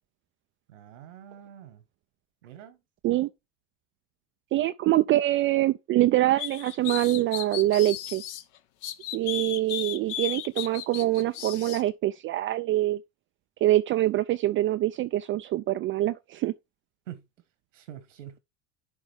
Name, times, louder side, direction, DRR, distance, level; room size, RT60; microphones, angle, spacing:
voice 1, 0.7-1.8 2.4-2.8 17.1-17.2 17.7-18.4, right 11 dB, 85° right, 1.6 m, -45 dB
voice 2, 4.5-8.2 9.1-13.0 13.6-16.5, right 15 dB, 35° right, 0.4 m, -24 dB
sound 1, 6.4-8.4 8.8-11.8, left 11 dB, 55° left, 0.9 m, -35 dB
10.5 x 3.6 x 3.4 m
hypercardioid pair, 85°, 36 cm